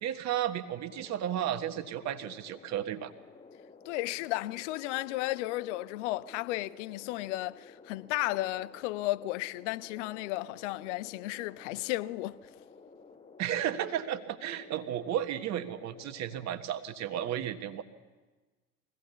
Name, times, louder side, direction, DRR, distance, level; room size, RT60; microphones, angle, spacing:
voice 1, 0.0-3.1 13.4-17.8, right 10 dB, 35° right, 1.4 m, -33 dB
sound 1, 0.9-16.6, left 4 dB, 15° left, 1.1 m, -53 dB
voice 2, 3.9-12.4, left 17 dB, 50° left, 0.6 m, -34 dB
23.0 x 16.5 x 7.1 m
figure-of-eight pair, 75°, 46 cm